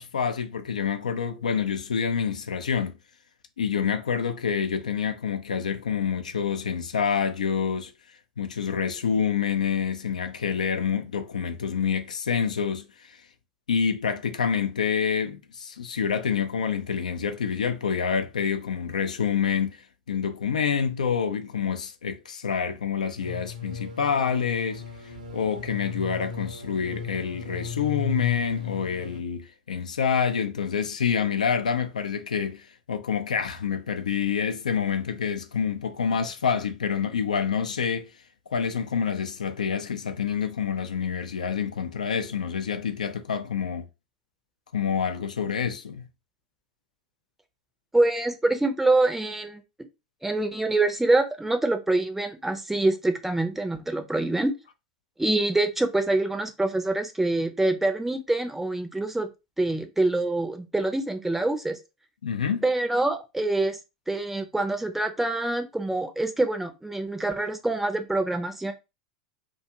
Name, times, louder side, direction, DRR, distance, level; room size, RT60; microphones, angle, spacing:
voice 1, 0.0-3.0 3.6-7.9 8.4-13.2 13.7-24.8 25.3-38.1 38.5-43.8 44.7-46.1 62.2-62.6, left 7 dB, 80° left, 0.3 m, -27 dB
sound 1, 23.2-29.2, left 6 dB, 80° right, 0.7 m, -35 dB
voice 2, 47.9-49.6 50.2-54.5 55.2-59.3 59.6-61.8 62.6-63.8 64.1-68.7, right 2 dB, 5° right, 0.5 m, -25 dB
2.4 x 2.2 x 2.8 m
figure-of-eight pair, 90°, 4 cm